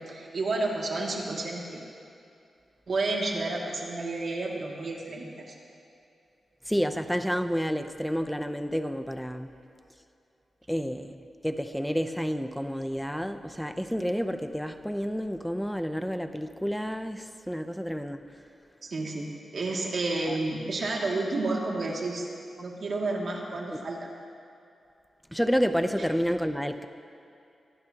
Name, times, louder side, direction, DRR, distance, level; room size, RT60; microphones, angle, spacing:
voice 1, 0.0-1.8 2.9-5.5 18.8-22.3 22.6-24.1, right 2 dB, 60° right, -2 dB, 2.5 m, -31 dB
voice 2, 6.7-9.6 10.7-18.2 20.3-20.4 23.7-23.8 25.3-26.8, equal, ahead, 8 dB, 0.7 m, -30 dB
24.5 x 18.0 x 3.0 m, 2.6 s
wide cardioid pair, 115°, 0 cm